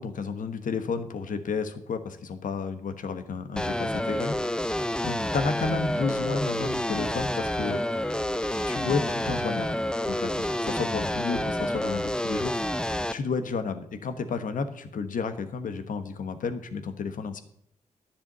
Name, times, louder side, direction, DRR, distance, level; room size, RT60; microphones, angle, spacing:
voice 1, 0.0-4.4 5.0-7.8 8.7-9.8 10.1-12.5 13.1-17.4, left 5 dB, 70° left, 9 dB, 1.3 m, -31 dB
sound 1, 3.6-13.1, left 1 dB, 5° left, 0.6 m, -29 dB
11.0 x 6.9 x 6.7 m, 0.69 s
cardioid pair, 55°, 14 cm